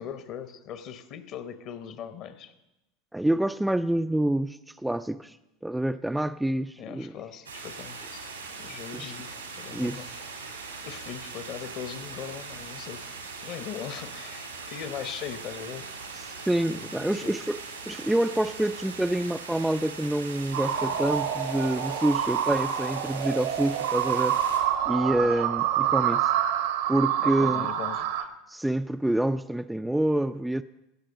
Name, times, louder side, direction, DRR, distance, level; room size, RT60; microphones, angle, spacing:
voice 1, 0.0-2.5 6.8-8.3 8.6-10.4 10.8-13.1 13.4-15.9 16.7-17.4 25.2-25.3 27.2-28.3, left 8 dB, 50° left, 11 dB, 1.0 m, -40 dB
voice 2, 3.1-5.4 5.6-7.1 8.9-9.1 9.7-10.0 16.5-17.6 17.9-24.4 24.9-26.3 26.9-27.7 28.5-30.6, right 1 dB, 5° right, 10 dB, 0.3 m, -27 dB
sound 1, 7.5-24.6, right 4 dB, 90° right, 2.1 m, -40 dB
sound 2, 20.5-28.2, right 10 dB, 70° right, 0.9 m, -27 dB
16.5 x 6.7 x 5.2 m, 0.95 s
figure-of-eight pair, 80°, 0 cm